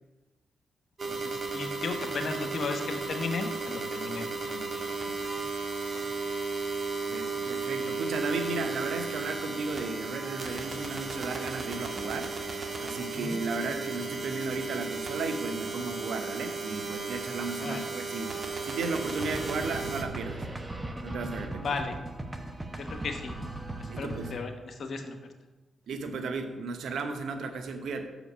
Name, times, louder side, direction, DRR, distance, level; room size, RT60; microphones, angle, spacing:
sound 1, 1.0-20.0, right 4 dB, 45° right, 1.4 m, -35 dB
voice 1, 1.1-5.3 5.9-6.0 13.1-13.4 17.6-17.8 21.6-22.0 22.7-23.3 23.8-25.2, left 4 dB, 60° left, 6 dB, 0.9 m, -36 dB
voice 2, 7.0-12.3 12.8-20.5 21.0-21.7 23.9-24.3 25.9-28.1, right 4 dB, 75° right, 6 dB, 0.8 m, -35 dB
sound 2, 19.2-24.4, right 2 dB, 20° right, 1.0 m, -38 dB
6.4 x 5.1 x 6.1 m, 1.2 s
supercardioid pair, 45°, 0 cm